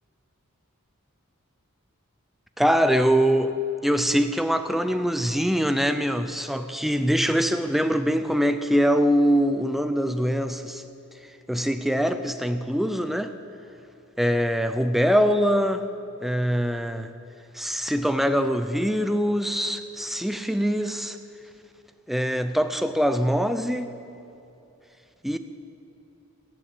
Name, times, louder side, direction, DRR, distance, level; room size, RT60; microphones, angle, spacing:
voice 1, 2.6-3.6 3.8-10.8 11.5-13.3 14.2-15.9 16.2-17.1 17.5-21.2 22.1-24.0 25.2-25.4, equal, ahead, 9 dB, 0.4 m, -23 dB
14.0 x 11.0 x 7.9 m, 2.9 s
head